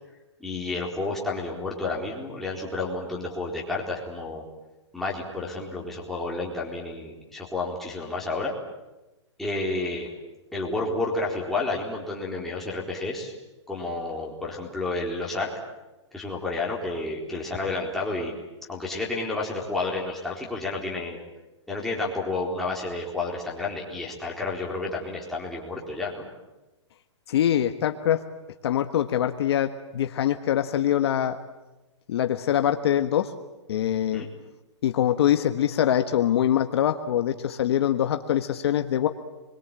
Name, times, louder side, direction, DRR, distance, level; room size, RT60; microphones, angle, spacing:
voice 1, 0.4-4.4 4.9-8.5 9.4-10.1 10.5-13.3 13.7-15.5 16.1-18.4 18.7-21.2 21.7-26.3 34.1-34.3, left 2 dB, ahead, -4 dB, 4.1 m, -30 dB
voice 2, 27.3-28.2 28.6-31.4 32.1-33.3 33.7-34.2 34.8-39.1, left 10 dB, 55° left, 7 dB, 1.5 m, -23 dB
28.0 x 22.5 x 9.0 m, 1.1 s
hypercardioid pair, 160°, 16 cm